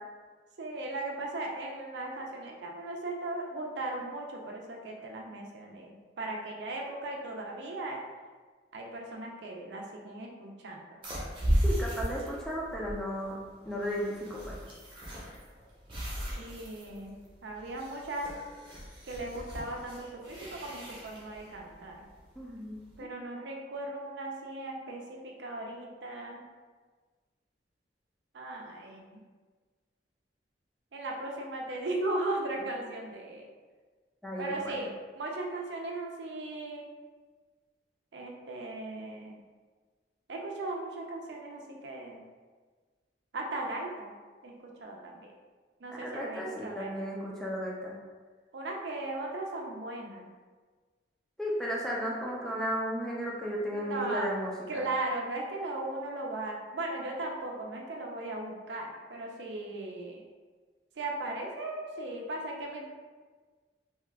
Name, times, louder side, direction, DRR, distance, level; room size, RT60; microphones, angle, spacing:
voice 1, 0.6-8.0 8.7-11.0 16.4-18.4 19.0-21.9 23.0-26.4 28.3-29.2 30.9-33.5 34.4-36.9 38.1-39.4 40.3-42.2 43.3-44.1 44.4-45.3 45.8-47.1 48.5-50.3 53.7-54.3 54.7-60.2 61.0-62.9, right 2 dB, 75° right, 0 dB, 0.5 m, -37 dB
sound 1, 11.0-22.9, equal, 30° right, 0.7 m, -36 dB
voice 2, 11.6-14.6 22.4-22.8 32.6-32.7 34.2-34.8 45.9-47.9 51.4-54.9, equal, 5° left, -4 dB, 0.4 m, -34 dB
2.8 x 2.3 x 3.3 m, 1.4 s
head